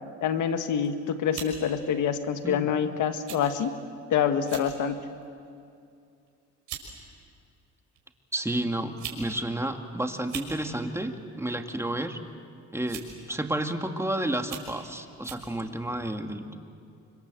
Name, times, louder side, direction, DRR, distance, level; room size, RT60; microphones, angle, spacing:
voice 1, 0.2-3.7 4.1-5.0, left 8 dB, 80° left, 8 dB, 1.6 m, -26 dB
sound 1, 0.7-0.9 1.3-1.6 2.4-2.6 3.3-3.4 3.7-3.9 4.4-4.7 5.2-5.5 6.3-6.4 6.7-6.9 8.0-8.1 8.8-9.2 9.5-9.6 10.2-10.5 11.8-12.1 12.9-13.2 13.8-13.9 14.4-14.7 15.2-15.5, right 9 dB, 85° right, 5.8 m, -39 dB
voice 2, 8.3-12.2 12.7-16.6, right 1 dB, 10° right, 5 dB, 2.2 m, -31 dB
29.5 x 25.5 x 7.8 m, 2.4 s
cardioid pair, 90°, 30 cm